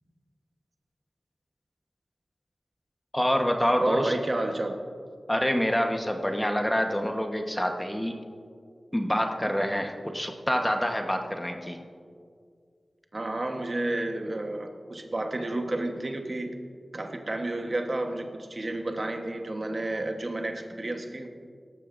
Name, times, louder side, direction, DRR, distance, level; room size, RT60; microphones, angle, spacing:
voice 1, 3.1-4.1 5.3-8.1 8.9-11.8, equal, 10° left, 3 dB, 1.1 m, -26 dB
voice 2, 3.8-4.8 13.1-16.6 16.9-21.3, right 2 dB, 45° right, 4 dB, 1.1 m, -31 dB
18.0 x 14.0 x 2.6 m, 2.2 s
wide cardioid pair, 70°, 0 cm